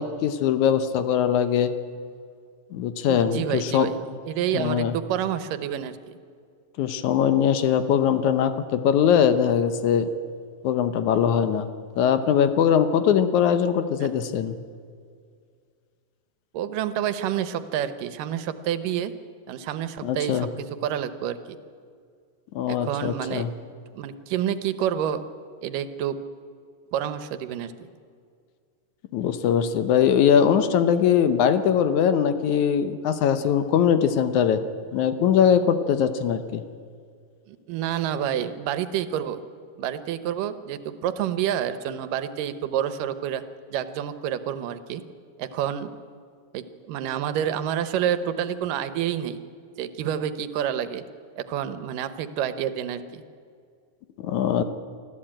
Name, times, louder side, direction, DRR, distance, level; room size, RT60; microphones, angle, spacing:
voice 1, 0.0-1.7 2.7-3.9 4.5-5.0 6.8-10.1 10.6-11.7 12.0-14.6 20.0-20.5 22.6-23.5 29.1-34.6 34.9-36.6 54.2-54.6, left 8 dB, 70° left, 10 dB, 2.1 m, -21 dB
voice 2, 3.1-6.0 14.0-14.1 16.5-19.1 19.5-21.4 22.7-23.5 23.9-25.2 25.6-26.2 26.9-27.9 37.5-39.4 39.8-43.4 43.7-45.0 45.4-45.9 46.5-49.4 49.8-51.0 51.4-53.2, right 10 dB, 80° right, 12 dB, 2.5 m, -28 dB
25.0 x 14.0 x 8.9 m, 2.2 s
omnidirectional pair, 3.8 m